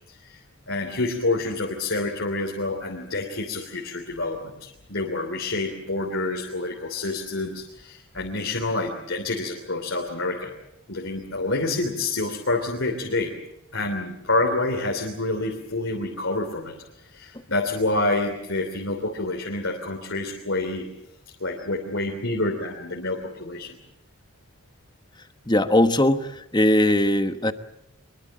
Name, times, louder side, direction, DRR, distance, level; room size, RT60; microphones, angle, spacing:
voice 1, 0.1-10.5 10.9-13.3 13.7-20.9 21.4-23.8, left 2 dB, 65° left, 1 dB, 3.2 m, -28 dB
voice 2, 25.5-27.5, left 1 dB, 20° left, 9 dB, 1.1 m, -20 dB
24.5 x 22.0 x 7.7 m, 0.85 s
head